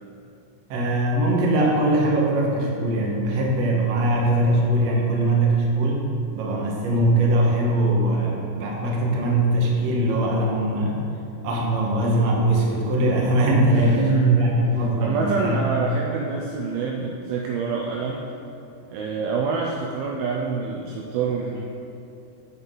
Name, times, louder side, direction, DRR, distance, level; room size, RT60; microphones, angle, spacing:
voice 1, 0.7-6.1 6.3-11.0 11.4-15.6, right 1 dB, 70° right, -2 dB, 1.6 m, -21 dB
voice 2, 13.7-18.3 18.9-21.6, right 4 dB, 90° right, 0 dB, 2.1 m, -25 dB
8.1 x 7.8 x 5.3 m, 2.7 s
omnidirectional pair, 5.1 m